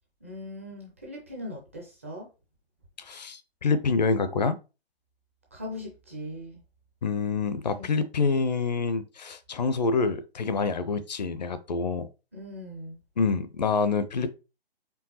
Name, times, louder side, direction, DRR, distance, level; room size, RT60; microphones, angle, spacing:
voice 1, 0.2-2.3 5.5-6.6 7.7-8.1 12.3-13.0, left 1 dB, 15° right, 0.4 m, -40 dB
voice 2, 3.0-4.6 7.0-12.1 13.2-14.3, left 4 dB, 45° left, 0.5 m, -27 dB
4.5 x 3.6 x 2.8 m
figure-of-eight pair, 145°, 31 cm